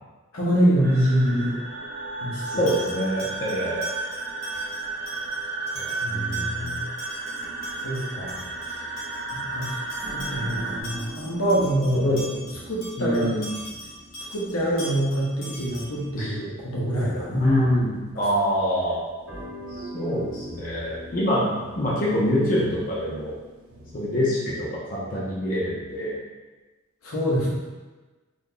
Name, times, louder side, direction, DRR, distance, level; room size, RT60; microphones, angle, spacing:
voice 1, 0.3-1.6 2.2-2.7 6.0-6.8 7.8-8.4 9.3-9.7 10.1-12.0 12.3-12.4 12.7-13.3 14.3-17.5 27.0-27.5, right 1 dB, 75° left, -5 dB, 0.9 m, -25 dB
sound 1, 0.8-10.8, right 3 dB, 45° right, 0.4 m, -33 dB
sound 2, 2.4-16.1, equal, 60° left, 1.1 m, -42 dB
voice 2, 2.6-3.9 5.7-6.7 11.9-12.2 13.0-13.5 16.2-16.3 17.3-19.0 19.7-23.3 23.9-26.1, equal, 40° left, -7 dB, 0.6 m, -25 dB
sound 3, 7.4-18.6 19.2-24.2, right 1 dB, 65° right, 0.8 m, -43 dB
2.8 x 2.5 x 3.7 m, 1.2 s
head